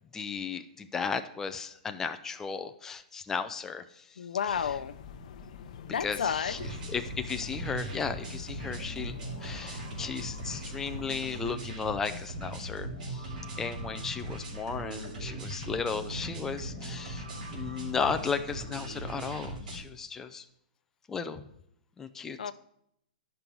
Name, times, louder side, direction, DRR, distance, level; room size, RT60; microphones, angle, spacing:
voice 1, 0.1-4.1 4.5-4.6 6.0-6.6 6.9-13.3 13.6-17.2 17.5-20.4 21.1-21.4 22.0-22.4, left 5 dB, 10° left, 8 dB, 0.4 m, -35 dB
voice 2, 4.2-5.0 5.9-6.7 22.4-22.5, left 7 dB, 85° left, 14 dB, 0.5 m, -31 dB
sound 1, 4.5-11.5, left 7 dB, 50° left, 0.7 m, -46 dB
sound 2, 6.4-19.8, right 1 dB, 65° right, 2.8 m, -39 dB
11.0 x 5.3 x 4.5 m, 0.75 s
hypercardioid pair, 155°, 5 cm